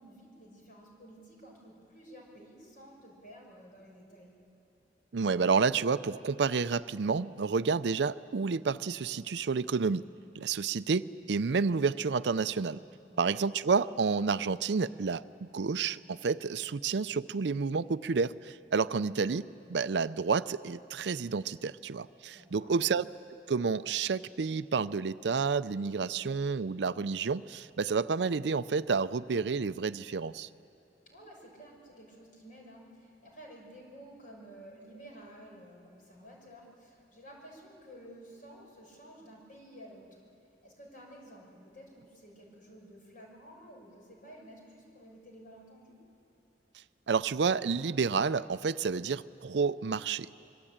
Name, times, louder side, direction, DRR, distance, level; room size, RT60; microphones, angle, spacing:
voice 1, 0.0-4.3 13.1-13.4 22.3-22.7 31.1-40.2 40.6-46.0, equal, 50° left, 0 dB, 5.8 m, -52 dB
voice 2, 5.1-10.1 10.4-12.8 13.2-23.0 23.5-30.5 47.1-50.3, right 5 dB, 70° right, 15 dB, 0.5 m, -30 dB
24.5 x 23.0 x 8.8 m, 2.6 s
head